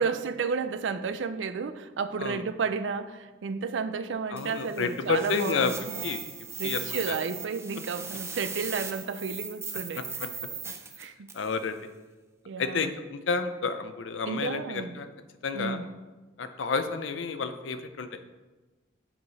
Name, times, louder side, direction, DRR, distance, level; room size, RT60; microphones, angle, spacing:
voice 1, 0.0-6.0 6.6-10.0 11.0-11.3 12.5-12.9 14.2-15.0 15.5-15.9, right 5 dB, 75° right, 11 dB, 0.4 m, -32 dB
voice 2, 4.3-5.7 6.0-6.2 6.6-7.1 11.3-11.8 12.6-15.1 15.4-15.8 16.4-18.1, left 4 dB, 85° left, 9 dB, 0.5 m, -30 dB
sound 1, 4.4-11.6, right 5 dB, 15° right, 0.5 m, -38 dB
7.1 x 4.9 x 4.1 m, 1.2 s
head